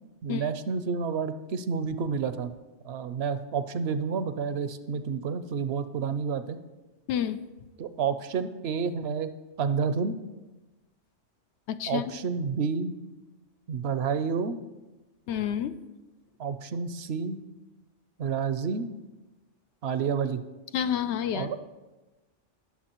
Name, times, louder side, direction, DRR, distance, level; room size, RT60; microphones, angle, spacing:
voice 1, 0.2-2.5 2.8-6.6 7.8-10.1 11.9-13.0 13.7-14.5 16.4-17.4 18.2-18.9 19.8-20.4 21.3-21.6, right 6 dB, 65° right, 11 dB, 0.8 m, -29 dB
voice 2, 7.1-7.4 11.7-12.1 15.3-15.8 20.7-21.5, left 9 dB, 70° left, 12 dB, 0.8 m, -29 dB
18.0 x 7.0 x 3.0 m, 1.1 s
omnidirectional pair, 1.2 m